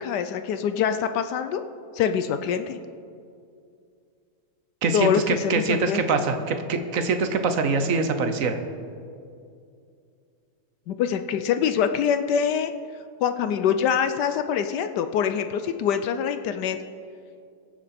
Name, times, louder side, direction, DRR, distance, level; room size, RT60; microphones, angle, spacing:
voice 1, 0.0-1.6 1.9-2.8 4.9-6.0 10.9-12.7 13.2-16.8, left 8 dB, 75° left, 9 dB, 1.0 m, -24 dB
voice 2, 4.8-8.6, right 4 dB, 55° right, 8 dB, 0.9 m, -24 dB
21.5 x 7.5 x 4.2 m, 2.4 s
omnidirectional pair, 2.2 m